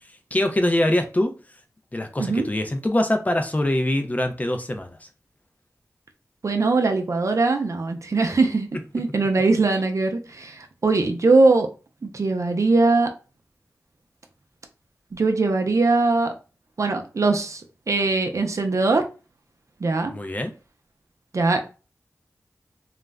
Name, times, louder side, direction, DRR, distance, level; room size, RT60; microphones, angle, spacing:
voice 1, 0.0-1.3 1.9-5.1 20.1-20.5, left 1 dB, 25° left, 6 dB, 0.4 m, -24 dB
voice 2, 6.4-8.7 8.9-11.7 12.0-13.1 15.1-16.3 16.8-17.6 17.9-19.0 19.8-20.1 21.3-21.6, right 3 dB, 60° right, 5 dB, 0.5 m, -21 dB
2.4 x 2.0 x 3.3 m, 0.33 s
wide cardioid pair, 60°, 6 cm